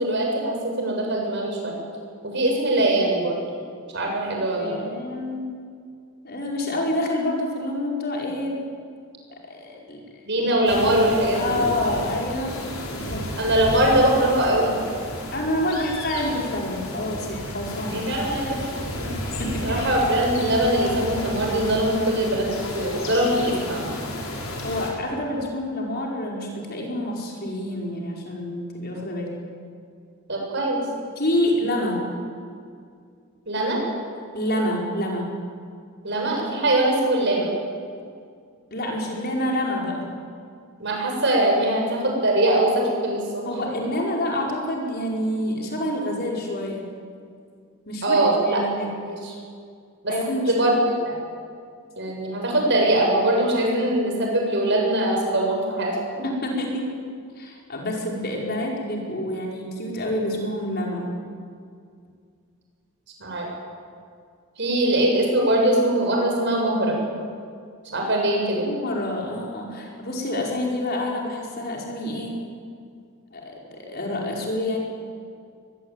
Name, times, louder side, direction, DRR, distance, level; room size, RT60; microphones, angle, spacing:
voice 1, 0.0-1.8 2.2-3.4 3.9-4.8 10.2-11.6 13.4-14.7 17.9-18.7 19.0-19.1 19.6-22.5 22.7-23.9 30.3-30.8 33.5-33.8 36.0-37.5 40.8-43.4 48.0-48.6 49.1-49.3 50.0-50.1 50.5-50.7 51.0-51.2 52.0-56.0 63.2-63.5 64.6-67.0 67.9-68.7, right 1 dB, 55° right, 0 dB, 7.6 m, -22 dB
voice 2, 4.4-5.5 6.2-8.6 9.3-10.0 10.8-10.9 11.3-12.6 12.9-13.4 15.3-18.0 19.0-19.9 24.6-29.4 31.2-32.1 34.3-35.4 38.7-40.1 43.4-46.8 47.9-49.0 50.1-50.6 56.2-56.9 57.4-61.1 68.6-72.4 73.3-74.8, left 1 dB, 45° left, -1 dB, 5.2 m, -28 dB
sound 1, 10.7-24.9, left 1 dB, 65° left, 5.5 m, -32 dB
23.0 x 21.0 x 9.2 m, 2.2 s
head